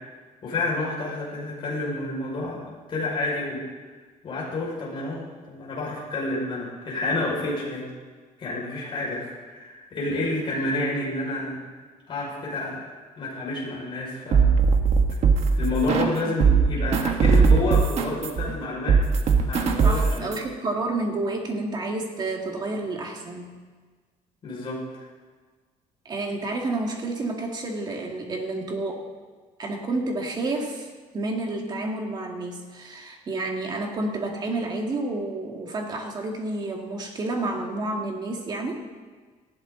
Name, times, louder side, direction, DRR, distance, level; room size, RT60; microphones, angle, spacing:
voice 1, 0.4-3.6 4.2-7.8 8.4-11.6 12.1-12.8 13.2-14.5 15.5-19.0 19.5-20.4 24.4-24.8, left 2 dB, 40° left, -4 dB, 5.8 m, -29 dB
sound 1, 14.3-16.1 16.4-20.4, right 5 dB, 50° right, 1.4 m, -20 dB
voice 2, 19.8-23.6 26.1-29.1 29.6-30.9 31.1-38.9, right 2 dB, 30° right, 2 dB, 2.1 m, -30 dB
19.0 x 15.0 x 4.0 m, 1.4 s
cardioid pair, 175°, 14 cm